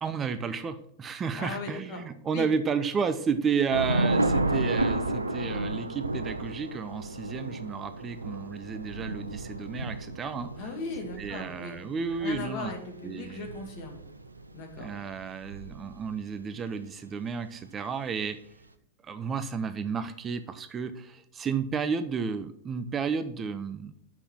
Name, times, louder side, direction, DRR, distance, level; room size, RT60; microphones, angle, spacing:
voice 1, 0.0-10.5 11.2-12.7 13.0-13.5 14.8-18.4 19.0-23.9, right 6 dB, 25° right, 10 dB, 0.6 m, -32 dB
voice 2, 1.3-2.0 2.3-2.5 10.6-11.8 12.2-14.0 14.5-14.9, left 3 dB, 45° left, 3 dB, 2.2 m, -38 dB
Thunder / Rain, 3.7-16.2, right 2 dB, 80° right, 0.5 m, -32 dB
6.1 x 5.8 x 7.2 m, 0.70 s
figure-of-eight pair, 90°, 0 cm